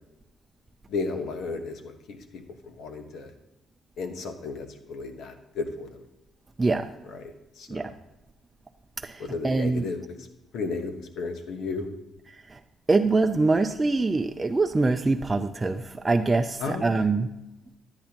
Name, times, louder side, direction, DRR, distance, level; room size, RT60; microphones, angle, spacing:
voice 1, 0.9-3.3 4.0-6.0 7.1-7.9 9.2-10.3 10.5-11.9 16.6-17.1, left 4 dB, 75° left, 6 dB, 1.1 m, -34 dB
voice 2, 6.6-6.9 7.7-7.9 9.0-9.9 12.5-12.6 12.9-17.3, right 3 dB, 25° right, 5 dB, 0.4 m, -24 dB
10.0 x 9.5 x 2.9 m, 0.93 s
cardioid pair, 90°, 0 cm